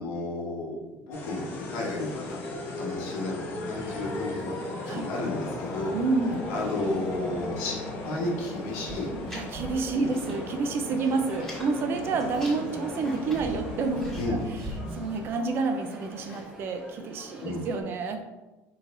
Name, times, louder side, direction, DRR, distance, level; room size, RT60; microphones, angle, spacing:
voice 1, 0.0-5.9 6.5-9.1 9.9-10.2 14.1-14.4 16.2-16.5 17.4-17.7, left 2 dB, 85° left, -3 dB, 1.3 m, -33 dB
sound 1, 1.1-15.4, left 3 dB, 40° left, 0.8 m, -37 dB
sound 2, 3.6-17.8, right 1 dB, 15° right, 0.8 m, -46 dB
voice 2, 5.9-6.4 9.3-14.2 14.9-18.2, right 4 dB, 45° right, 6 dB, 0.5 m, -29 dB
sound 3, 8.9-10.5 10.7-11.7 12.1-14.8, equal, 5° left, 1.3 m, -41 dB
4.7 x 3.9 x 2.6 m, 1.1 s
cardioid pair, 145°, 6 cm